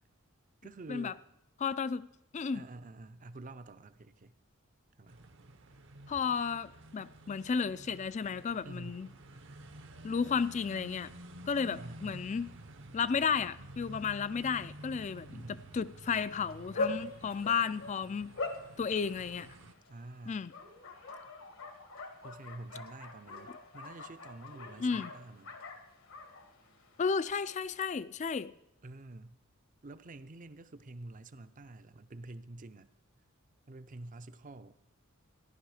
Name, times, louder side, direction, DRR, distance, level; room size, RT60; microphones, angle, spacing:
voice 1, 0.6-1.2 2.5-4.4 5.0-5.2 8.6-9.0 11.7-12.3 15.3-15.7 19.9-20.4 22.2-25.6 28.8-29.4 29.8-32.9 33.7-34.7, right 2 dB, 40° right, 12 dB, 0.6 m, -48 dB
voice 2, 1.6-2.1 2.3-2.7 6.1-9.1 10.0-11.1 11.5-12.5 12.9-18.3 18.8-19.5 20.3-20.5 24.8-25.1 27.0-28.5, left 6 dB, 35° left, 17 dB, 0.4 m, -33 dB
sound 1, 5.1-19.7, right 1 dB, 65° right, 0.9 m, -51 dB
Bark, 16.0-27.3, left 3 dB, 75° left, 1.5 m, -43 dB
14.5 x 11.0 x 4.9 m, 0.84 s
head